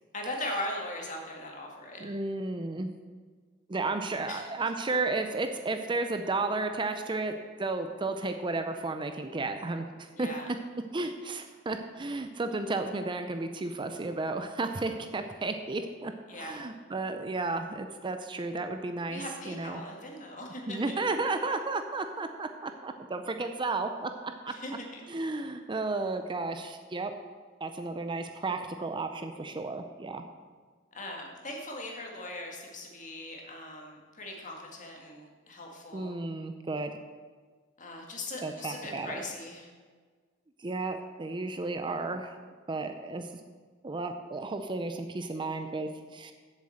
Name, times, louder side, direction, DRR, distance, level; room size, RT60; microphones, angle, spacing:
voice 1, 0.1-2.0 4.3-4.4 10.1-10.5 16.3-16.6 19.1-21.0 24.5-25.0 30.9-36.1 37.8-39.7, left 1 dB, 40° left, 0 dB, 1.9 m, -39 dB
voice 2, 2.0-2.9 3.7-10.3 10.9-19.8 20.7-24.5 25.1-27.1 27.6-30.2 35.9-37.0 38.4-39.2 40.6-42.4 42.7-43.3 43.8-46.3, right 3 dB, 25° right, 7 dB, 0.5 m, -33 dB
7.5 x 7.4 x 7.8 m, 1.5 s
head